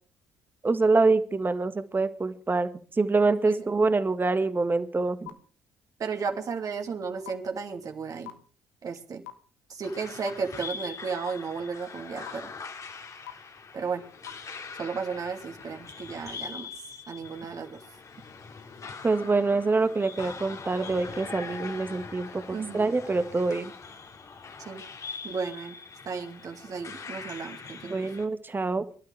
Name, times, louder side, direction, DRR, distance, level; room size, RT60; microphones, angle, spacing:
voice 1, 0.6-2.7 3.0-5.3 19.0-23.7 27.9-28.9, right 3 dB, 25° right, 11 dB, 1.7 m, -25 dB
sound 1, 5.3-5.4 6.2-6.3 7.2-7.3 8.3-8.4 9.3-9.4 10.3-10.4 11.3-11.4 12.3-12.4 13.3-13.4 14.3-14.4, left 18 dB, 80° left, 1.2 m, -38 dB
voice 2, 6.0-8.3 8.8-9.2 9.7-12.5 13.7-14.0 14.8-16.7 17.1-17.8 22.5-22.9 24.6-24.8 25.2-25.7 26.0-27.9, right 5 dB, 50° right, 4 dB, 2.7 m, -34 dB
sound 2, 9.8-28.3, left 5 dB, 45° left, 2.4 m, -42 dB
24.5 x 12.5 x 3.4 m, 0.38 s
hypercardioid pair, 50°, 8 cm